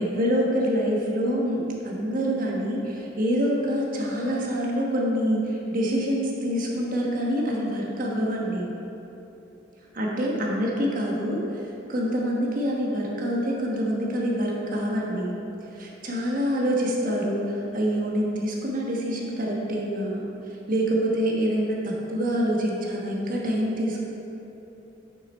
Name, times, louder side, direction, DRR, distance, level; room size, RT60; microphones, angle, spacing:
voice 1, 0.0-8.7 9.9-15.3 15.7-24.0, equal, 45° right, -2 dB, 1.3 m, -26 dB
8.7 x 5.9 x 4.3 m, 3.0 s
head